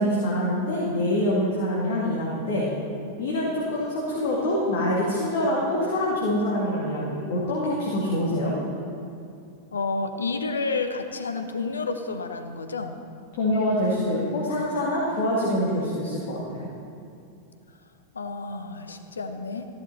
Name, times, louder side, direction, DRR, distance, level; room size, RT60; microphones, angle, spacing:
voice 1, 0.0-2.7 3.2-8.6 13.3-16.7, left 1 dB, 50° left, -5 dB, 2.1 m, -25 dB
voice 2, 9.7-13.0 18.1-19.7, left 4 dB, 75° left, 7 dB, 0.9 m, -30 dB
14.5 x 11.0 x 4.2 m, 2.5 s
figure-of-eight pair, 90°, 0 cm